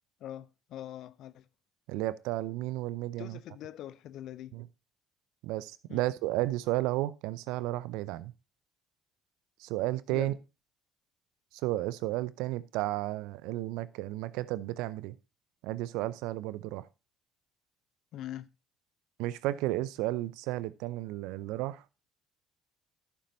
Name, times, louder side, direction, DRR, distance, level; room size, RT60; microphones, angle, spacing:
voice 1, 0.2-1.5 3.2-4.6 5.9-6.0 10.1-10.3 18.1-18.5, left 12 dB, 65° left, 0.6 m, -43 dB
voice 2, 1.9-3.4 4.5-4.7 5.4-8.3 9.6-10.3 11.6-15.1 15.6-16.9 19.2-21.8, right 16 dB, 75° right, 0.5 m, -33 dB
12.5 x 6.9 x 2.7 m
hypercardioid pair, 60°, 0 cm